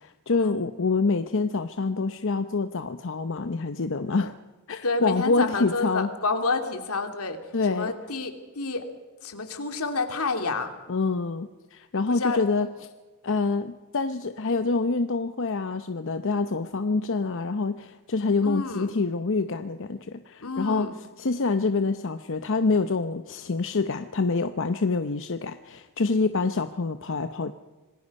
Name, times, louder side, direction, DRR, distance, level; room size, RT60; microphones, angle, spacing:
voice 1, 0.0-4.3 4.7-6.1 7.5-7.9 10.9-12.7 13.2-20.9 21.2-27.5, left 3 dB, 60° left, 9 dB, 0.7 m, -26 dB
voice 2, 4.8-7.4 7.7-8.8 9.2-10.7 12.1-12.4 18.4-18.9 20.4-20.9, left 3 dB, 85° left, 6 dB, 2.5 m, -29 dB
26.0 x 20.0 x 5.4 m, 1.3 s
head